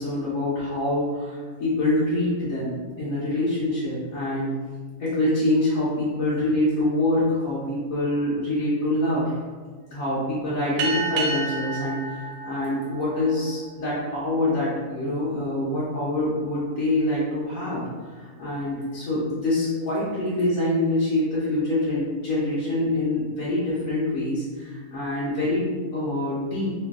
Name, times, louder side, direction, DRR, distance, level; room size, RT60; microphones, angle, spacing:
voice 1, 0.0-4.5 5.0-9.4 9.9-26.7, left 1 dB, 85° left, -10 dB, 1.3 m, -25 dB
sound 1, 10.8-13.7, right 3 dB, 80° right, 1.0 m, -30 dB
3.1 x 2.3 x 3.5 m, 1.5 s
omnidirectional pair, 1.4 m